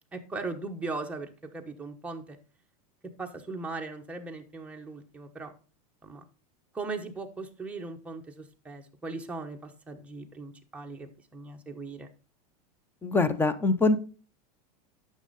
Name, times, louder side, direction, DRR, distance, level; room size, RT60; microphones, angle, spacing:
voice 1, 0.1-2.4 3.2-5.5 6.0-6.2 6.7-12.1, right 3 dB, 5° right, 2 dB, 1.0 m, -39 dB
voice 2, 13.0-14.0, left 3 dB, 10° left, 13 dB, 0.6 m, -23 dB
10.0 x 6.4 x 4.0 m, 0.37 s
supercardioid pair, 150°, 20 cm